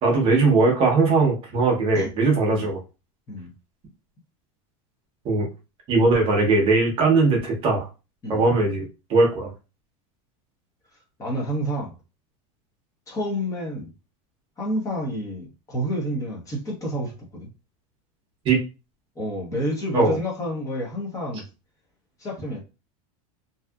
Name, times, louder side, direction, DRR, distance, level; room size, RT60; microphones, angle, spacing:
voice 1, 0.0-2.8 5.2-5.5 5.9-7.9 8.3-9.5 18.4-18.6 19.9-20.2, right 3 dB, 30° right, 0 dB, 0.8 m, -20 dB
voice 2, 11.2-11.9 13.1-13.9 14.6-17.5 19.1-21.4 22.2-22.6, equal, 20° left, -2 dB, 0.8 m, -29 dB
2.7 x 2.3 x 2.3 m, 0.30 s
supercardioid pair, 155°, 17 cm